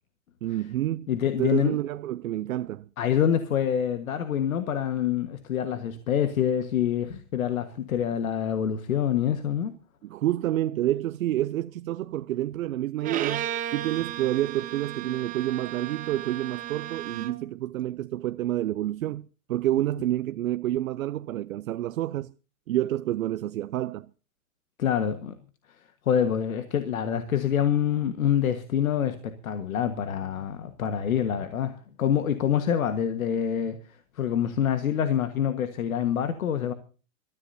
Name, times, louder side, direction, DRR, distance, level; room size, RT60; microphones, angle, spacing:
voice 1, 0.4-1.1 1.4-2.9 10.0-22.3 22.7-24.1, right 14 dB, 75° right, 0.7 m, -28 dB
voice 2, 1.1-1.8 3.0-9.7 24.8-25.3 26.0-33.8 34.2-36.7, left 9 dB, 85° left, 1.6 m, -26 dB
Bowed string instrument, 13.0-17.5, right 12 dB, 20° right, 1.1 m, -34 dB
25.5 x 14.0 x 2.7 m
hypercardioid pair, 145°, 41 cm